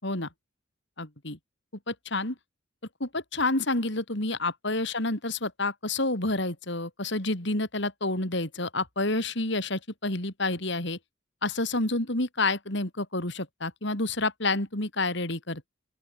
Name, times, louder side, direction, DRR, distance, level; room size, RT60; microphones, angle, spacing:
voice 1, 1.0-1.4 1.9-2.3 3.0-11.0 11.4-15.7, left 2 dB, 60° left, 4.1 m, -29 dB
open air
head